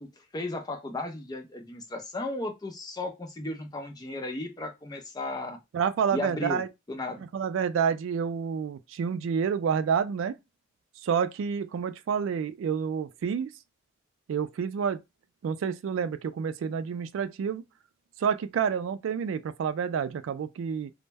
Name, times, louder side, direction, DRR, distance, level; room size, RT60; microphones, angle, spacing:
voice 1, 0.0-5.6 6.1-6.6 6.9-7.2, left 2 dB, 20° left, 0.5 m, -35 dB
voice 2, 5.7-6.7 7.3-10.3 11.0-13.5 14.3-15.0 15.4-17.6 18.2-20.9, right 7 dB, 90° right, 0.3 m, -29 dB
2.1 x 2.0 x 3.3 m
head